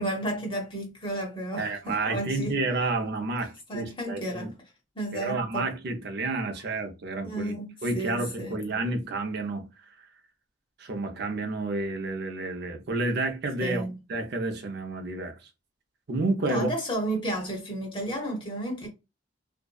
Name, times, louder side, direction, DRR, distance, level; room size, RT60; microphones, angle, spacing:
voice 1, 0.0-2.6 3.7-4.5 4.9-5.7 7.2-8.6 13.6-14.0 16.5-18.9, right 1 dB, 25° left, 0.9 m, -32 dB
voice 2, 1.6-4.5 5.1-7.6 7.8-9.9 10.8-13.8 14.1-15.4 16.1-16.7, right 2 dB, 55° right, 0.5 m, -30 dB
2.6 x 2.1 x 2.2 m
head